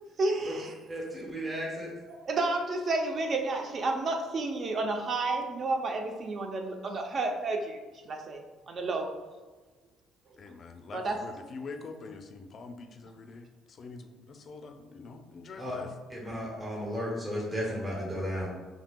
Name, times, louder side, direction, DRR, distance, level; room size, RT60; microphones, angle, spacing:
voice 1, 0.2-0.7 2.1-7.8 8.0-8.4 8.7-9.1 10.9-11.2, right 2 dB, 40° right, 3 dB, 0.5 m, -31 dB
voice 2, 0.9-1.9 15.6-15.8 16.1-18.5, equal, 15° right, -4 dB, 0.9 m, -34 dB
voice 3, 10.4-13.5 13.8-15.9, left 3 dB, 45° left, 6 dB, 0.4 m, -44 dB
5.8 x 2.7 x 2.2 m, 1.3 s
cardioid pair, 115°, 0 cm